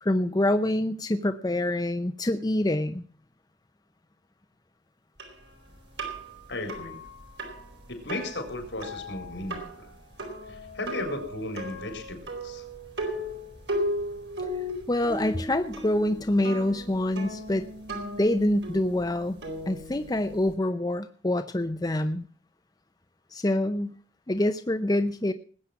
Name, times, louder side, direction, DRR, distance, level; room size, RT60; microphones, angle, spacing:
voice 1, 0.0-3.0 14.4-14.5 14.9-17.7 18.2-19.4 19.7-22.3 23.3-24.0 24.3-25.3, left 1 dB, 20° left, 8 dB, 0.6 m, -26 dB
sound 1, 5.2-20.5, equal, 75° right, 4.3 m, -36 dB
voice 2, 6.5-7.0 7.9-9.9 10.5-12.6, left 2 dB, 80° left, 4 dB, 4.1 m, -35 dB
19.5 x 8.5 x 5.9 m, 0.41 s
head